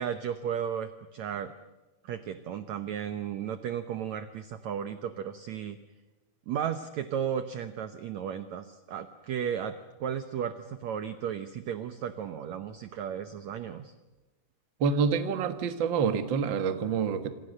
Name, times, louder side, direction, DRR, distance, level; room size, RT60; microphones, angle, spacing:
voice 1, 0.0-1.5 2.0-5.8 6.5-13.9, right 8 dB, 70° right, 10 dB, 1.7 m, -34 dB
voice 2, 14.8-17.3, right 6 dB, 50° right, 9 dB, 1.4 m, -27 dB
27.0 x 27.0 x 6.6 m, 1.1 s
omnidirectional pair, 4.3 m